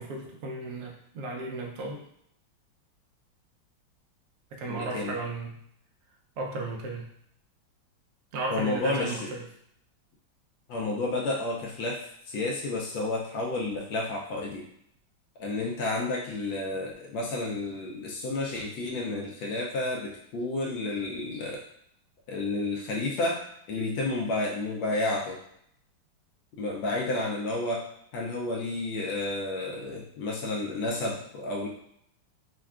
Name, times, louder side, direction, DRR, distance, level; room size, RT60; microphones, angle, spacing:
voice 1, 0.0-2.0 4.5-5.6 6.4-7.1 8.3-9.5, right 3 dB, 70° right, 1 dB, 0.8 m, -35 dB
voice 2, 4.7-5.1 8.5-9.3 10.7-14.7 15.4-21.6 22.3-23.4 23.7-25.4 26.6-27.9 28.1-31.7, left 2 dB, 80° left, -2 dB, 1.3 m, -31 dB
5.3 x 2.3 x 2.4 m, 0.71 s
omnidirectional pair, 2.1 m